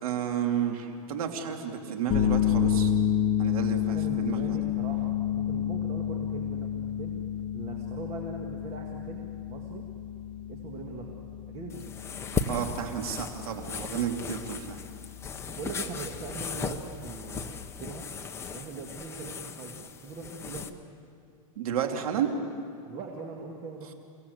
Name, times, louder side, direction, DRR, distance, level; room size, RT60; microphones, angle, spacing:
voice 1, 0.0-2.9 3.4-4.6 12.5-14.8 21.6-22.3, right 8 dB, 80° right, 3 dB, 3.0 m, -32 dB
sound 1, 2.1-18.0, left 9 dB, 30° left, 1.3 m, -31 dB
voice 2, 3.9-7.2 7.5-9.9 10.5-11.2 11.5-11.9 14.2-14.4 15.5-18.1 18.5-20.8 22.9-23.9, right 4 dB, 30° right, 0 dB, 2.0 m, -41 dB
sound 2, 11.7-20.7, left 5 dB, 15° left, 0.9 m, -37 dB
29.5 x 17.0 x 8.1 m, 2.4 s
supercardioid pair, 155°, 18 cm